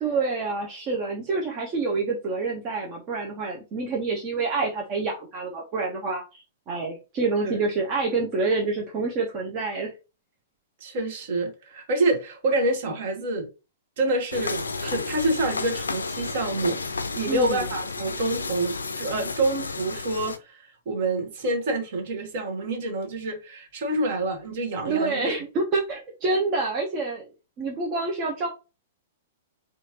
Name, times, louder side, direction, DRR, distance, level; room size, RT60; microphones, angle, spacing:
voice 1, 0.0-6.4 6.7-9.9 17.3-17.7 24.8-27.3 27.6-28.5, right 3 dB, 30° right, 0.8 m, -27 dB
voice 2, 10.8-13.5 14.0-16.8 17.2-25.4, right 2 dB, 50° right, 1.1 m, -27 dB
sound 1, 14.3-20.4, left 4 dB, 75° left, 0.4 m, -32 dB
4.3 x 2.4 x 2.8 m
figure-of-eight pair, 105°, 0 cm